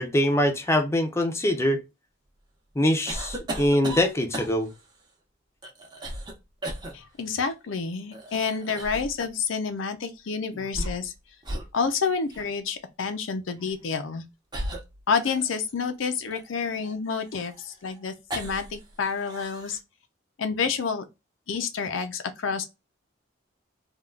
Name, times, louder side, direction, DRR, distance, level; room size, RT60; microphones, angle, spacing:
voice 1, 0.0-1.8 2.8-4.7, left 1 dB, 15° left, 0.5 m, -23 dB
sound 1, 3.1-4.8 5.6-6.3 6.6-6.9 8.1-9.1 10.5-11.2 11.4-11.7 12.3-12.5 13.6-13.8 14.5-15.7 16.3-18.8 19.1-19.8, right 1 dB, 25° right, 0.8 m, -36 dB
voice 2, 6.9-11.1 11.7-14.2 15.1-19.8 20.4-21.0 21.5-22.6, left 5 dB, 85° left, 0.5 m, -29 dB
3.5 x 2.3 x 2.2 m
head